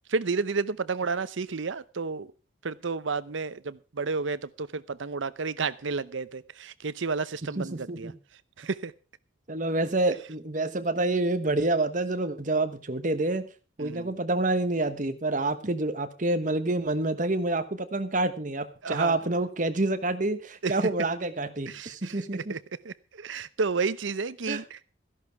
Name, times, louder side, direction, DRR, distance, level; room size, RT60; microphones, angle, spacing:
voice 1, 0.1-2.3 2.6-8.1 8.6-8.9 13.8-14.1 18.8-19.2 20.6-20.7 21.7-22.6 22.8-24.8, right 4 dB, 75° right, 0.7 m, -31 dB
voice 2, 7.4-8.2 9.5-13.5 13.8-22.5 24.5-24.6, right 2 dB, 40° right, 1.1 m, -28 dB
14.0 x 11.0 x 4.7 m
head